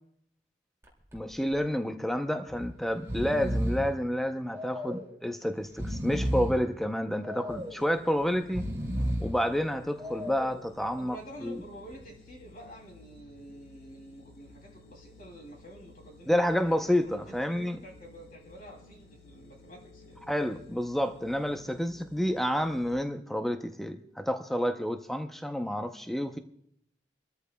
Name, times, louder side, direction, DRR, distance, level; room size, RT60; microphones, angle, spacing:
Breathing, 0.8-1.2 1.5-1.6 2.5-2.7 2.9-3.9 4.5-5.2 5.6-6.6 7.2-7.9 8.4-9.4 10.0-10.6, equal, 15° right, 2.3 m, -33 dB
voice 1, 1.1-8.6 9.2-11.2 11.4-11.6 16.3-17.8 20.3-26.4, equal, ahead, 6 dB, 0.6 m, -29 dB
sound 1, 7.5-22.9, left 2 dB, 65° left, 1.6 m, -54 dB
voice 2, 11.0-20.2, right 1 dB, 50° left, 2 dB, 2.8 m, -49 dB
27.5 x 13.5 x 2.2 m, 0.73 s
head